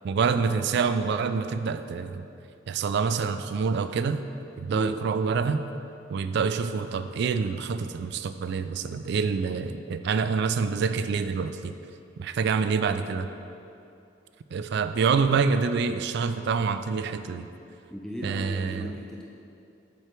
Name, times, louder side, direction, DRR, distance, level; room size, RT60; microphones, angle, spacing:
voice 1, 0.0-2.3 2.7-4.2 4.6-5.6 6.1-11.7 12.2-13.3 14.5-17.5 18.2-18.9, right 5 dB, 60° right, 10 dB, 0.3 m, -26 dB
voice 2, 17.9-19.2, equal, 5° left, -3 dB, 0.5 m, -36 dB
7.6 x 5.0 x 4.5 m, 2.7 s
head